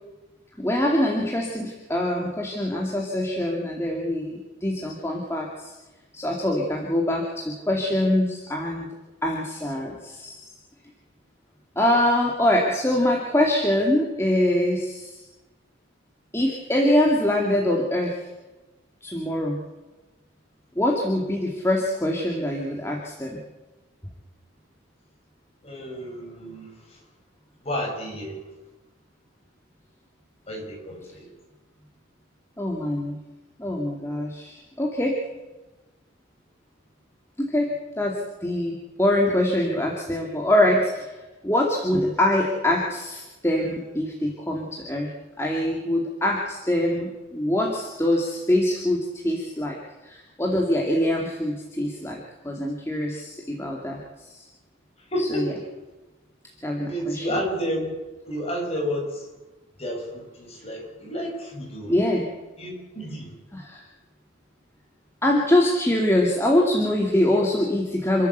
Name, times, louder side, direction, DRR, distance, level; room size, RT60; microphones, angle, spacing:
voice 1, 0.6-5.7 6.1-8.9 9.2-10.5 11.8-15.2 16.3-18.2 19.0-19.6 20.8-23.4 32.6-33.2 33.6-35.2 37.4-37.7 38.0-41.1 41.4-45.1 45.4-52.2 52.4-54.4 55.2-55.5 56.6-57.3 61.9-62.2 63.5-63.8 65.2-68.3, left 1 dB, 15° left, -1 dB, 2.4 m, -24 dB
voice 2, 25.6-27.0 27.6-28.4 30.5-31.3 53.1-53.2 55.0-55.5 56.8-58.0 58.2-59.3 59.8-61.9 62.6-63.4, equal, 30° left, 0 dB, 6.3 m, -31 dB
27.5 x 12.5 x 8.1 m, 1.1 s
head